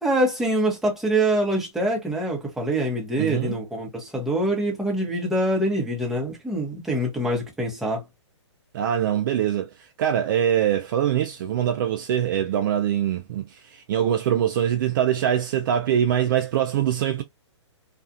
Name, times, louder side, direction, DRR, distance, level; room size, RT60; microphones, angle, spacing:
voice 1, 0.0-8.0, right 1 dB, ahead, 0.9 m, -24 dB
voice 2, 3.2-3.6 8.7-17.2, right 10 dB, 45° right, 0.4 m, -23 dB
2.5 x 2.3 x 2.6 m
hypercardioid pair, 145°, 15 cm